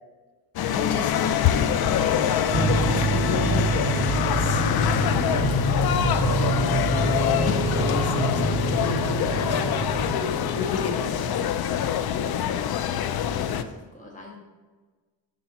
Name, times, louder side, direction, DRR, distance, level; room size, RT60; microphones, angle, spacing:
sound 1, 0.6-13.6, left 9 dB, 55° left, 0.5 m, -25 dB
voice 1, 0.7-2.3 2.7-6.6 7.0-11.5, left 4 dB, 35° left, 5 dB, 1.0 m, -35 dB
sound 2, 2.5-10.8, right 3 dB, 40° right, 1.9 m, -26 dB
Bowed string instrument, 6.9-11.1, equal, 10° right, 1.1 m, -39 dB
voice 2, 13.4-14.4, left 2 dB, 15° left, -2 dB, 1.5 m, -45 dB
11.0 x 4.1 x 3.0 m, 1.4 s
cardioid pair, 85°, 45 cm